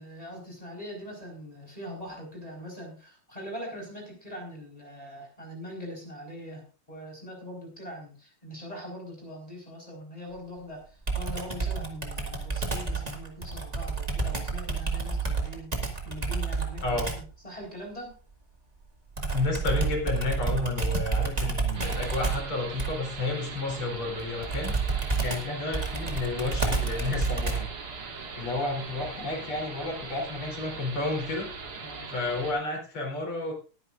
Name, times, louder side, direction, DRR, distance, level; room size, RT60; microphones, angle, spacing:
voice 1, 0.0-18.1 31.8-32.1, equal, 15° left, 0 dB, 4.3 m, -42 dB
Computer keyboard, 11.1-17.3 19.2-27.8, right 4 dB, 20° right, 1.8 m, -30 dB
voice 2, 19.3-24.8 25.2-27.7 28.3-31.5 32.1-33.5, left 2 dB, 90° left, 1 dB, 4.5 m, -31 dB
sound 1, 21.7-32.5, right 4 dB, 85° right, 2.9 m, -40 dB
20.0 x 9.7 x 2.5 m, 0.36 s
omnidirectional pair, 2.3 m